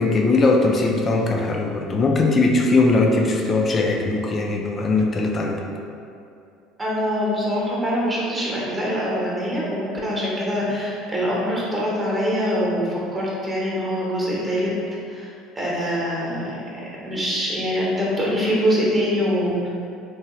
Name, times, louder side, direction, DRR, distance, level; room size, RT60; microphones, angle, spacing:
voice 1, 0.0-5.6, left 3 dB, 35° left, 1 dB, 0.3 m, -20 dB
voice 2, 6.8-14.7 15.1-19.7, equal, 20° right, -6 dB, 0.9 m, -24 dB
2.8 x 2.2 x 2.9 m, 2.5 s
supercardioid pair, 90°, 0 cm